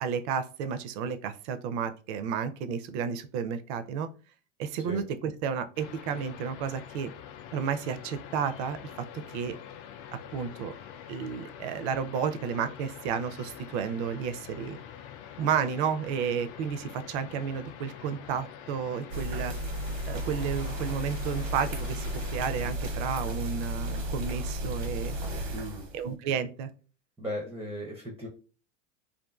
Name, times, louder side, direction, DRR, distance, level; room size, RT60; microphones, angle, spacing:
voice 1, 0.0-4.1 4.6-7.1 7.5-9.6 10.3-10.7 11.1-14.8 15.4-19.5 20.1-25.2 25.9-26.7, right 7 dB, 60° right, 10 dB, 0.5 m, -32 dB
sound 1, 5.8-22.8, left 9 dB, 65° left, 0.5 m, -46 dB
sound 2, 19.1-26.1, equal, 85° right, 0.9 m, -34 dB
voice 2, 25.5-25.9 27.2-28.3, equal, 5° right, 1 dB, 0.4 m, -36 dB
2.5 x 2.5 x 2.3 m, 0.37 s
hypercardioid pair, 105°, 37 cm